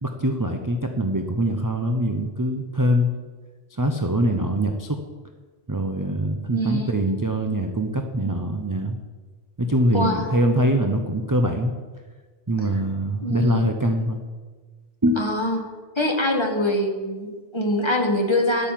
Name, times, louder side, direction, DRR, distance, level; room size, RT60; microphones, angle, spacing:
voice 1, 0.0-3.1 3.7-5.0 5.7-9.0 9.6-11.7 12.5-14.2 15.0-15.4, right 1 dB, 20° right, 4 dB, 0.7 m, -23 dB
voice 2, 6.5-6.9 9.9-10.2 13.2-13.6 15.2-15.6 16.0-18.7, left 1 dB, 20° left, 2 dB, 1.7 m, -24 dB
11.5 x 8.7 x 7.5 m, 1.4 s
omnidirectional pair, 1.2 m